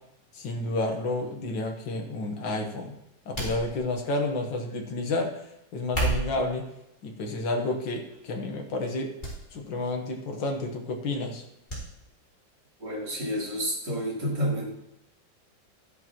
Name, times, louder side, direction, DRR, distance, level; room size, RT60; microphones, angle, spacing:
voice 1, 0.3-3.0 3.3-5.3 5.7-6.7 7.0-9.1 9.5-11.4, left 2 dB, 85° left, 2 dB, 2.0 m, -30 dB
sound 1, 3.3-4.1 5.8-6.5 7.3-7.6 8.1-8.2 9.2-9.4 9.7-9.8 11.7-11.8 12.2-12.3, right 2 dB, 25° left, 3.9 m, -31 dB
voice 2, 12.8-14.7, equal, 65° right, -5 dB, 4.3 m, -29 dB
13.5 x 10.5 x 3.1 m, 0.86 s
omnidirectional pair, 2.0 m